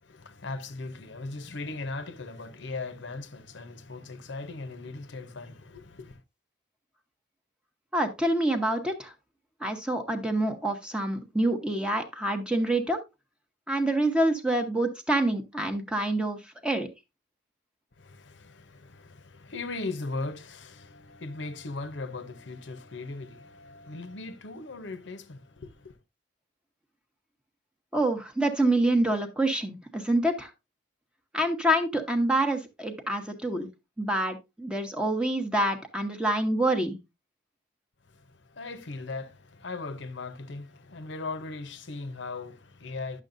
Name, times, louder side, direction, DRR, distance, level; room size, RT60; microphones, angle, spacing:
voice 1, 0.0-6.2 18.0-26.0 38.1-43.2, left 3 dB, 65° left, 0.8 m, -38 dB
voice 2, 7.9-9.1 9.6-13.0 13.7-16.9 27.9-30.5 31.3-33.7 34.0-37.0, right 1 dB, 5° right, 0.9 m, -26 dB
10.5 x 6.4 x 2.6 m
head